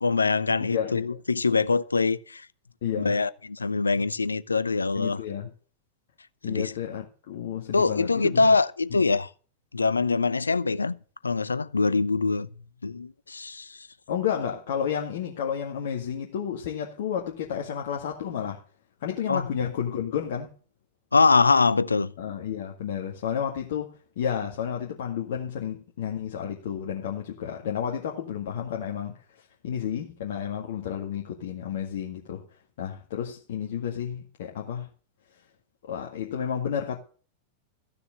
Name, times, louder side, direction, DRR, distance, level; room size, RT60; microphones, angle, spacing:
voice 1, 0.0-2.5 3.0-5.2 6.5-6.7 7.7-9.3 9.7-11.0 11.2-12.5 12.8-13.9 19.3-19.5 21.1-22.1, left 4 dB, 80° left, 0.6 m, -23 dB
voice 2, 0.6-1.2 2.8-3.2 3.9-4.0 4.9-5.5 6.4-8.6 8.9-9.0 14.1-18.6 19.0-20.5 22.2-32.5 32.8-34.9 35.8-37.0, left 8 dB, 55° left, 1.9 m, -31 dB
14.5 x 6.9 x 7.9 m
figure-of-eight pair, 90°, 0 cm